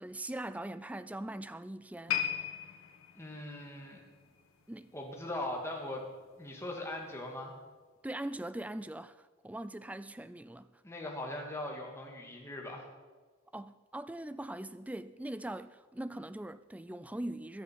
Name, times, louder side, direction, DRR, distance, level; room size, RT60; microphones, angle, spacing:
voice 1, 0.0-2.2 4.7-4.9 8.0-10.7 13.5-17.6, right 1 dB, 5° right, 0.3 m, -41 dB
sound 1, 2.1-5.4 5.7-6.0 6.6-6.7, left 9 dB, 85° left, 1.5 m, -38 dB
voice 2, 3.2-4.0 4.9-6.1 6.4-7.5 10.8-12.9, left 1 dB, 15° left, 2.1 m, -40 dB
22.0 x 7.9 x 5.8 m
head